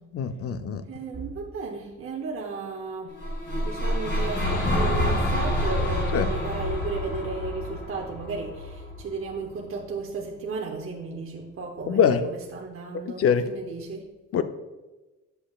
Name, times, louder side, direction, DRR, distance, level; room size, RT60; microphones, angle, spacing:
voice 1, 0.1-0.8 6.1-6.3 11.9-12.2 13.2-13.4 14.3-14.4, left 7 dB, 50° left, 10 dB, 0.6 m, -23 dB
voice 2, 0.9-3.1 3.6-14.1, right 4 dB, 45° right, 0 dB, 0.9 m, -34 dB
sound 1, 3.1-9.3, left 1 dB, 35° left, 2.0 m, -27 dB
7.7 x 6.7 x 2.4 m, 1.1 s
cardioid pair, 90°, 30 cm